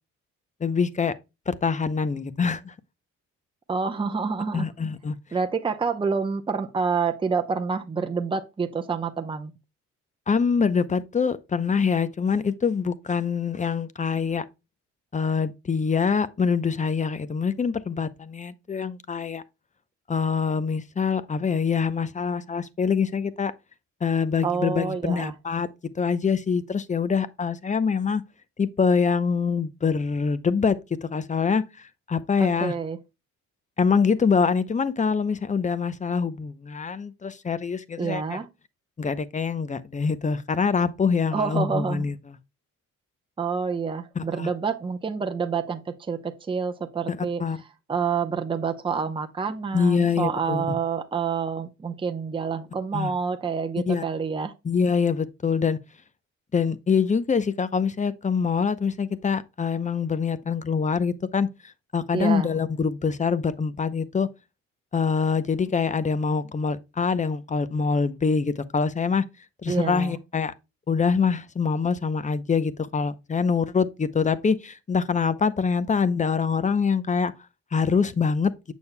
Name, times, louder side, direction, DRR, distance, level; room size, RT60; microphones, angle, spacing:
voice 1, 0.6-1.1 1.5-2.7 4.5-5.2 10.3-14.4 15.1-19.4 20.1-23.5 24.0-25.7 26.0-28.2 28.6-32.7 33.8-38.4 39.0-42.1 44.2-44.5 47.1-47.6 49.7-50.8 52.9-53.1 53.9-54.0 54.6-55.8 56.5-64.3 64.9-69.2 69.6-70.5 70.9-77.3 77.7-78.5, left 5 dB, 25° left, 0.6 m, -25 dB
voice 2, 3.7-4.7 5.3-9.5 24.4-25.3 32.4-33.0 38.0-38.5 41.3-42.0 43.4-47.4 47.9-54.5 62.1-62.5 69.7-70.2, right 5 dB, 15° right, 0.7 m, -28 dB
7.2 x 6.3 x 2.2 m
cardioid pair, 90°, 30 cm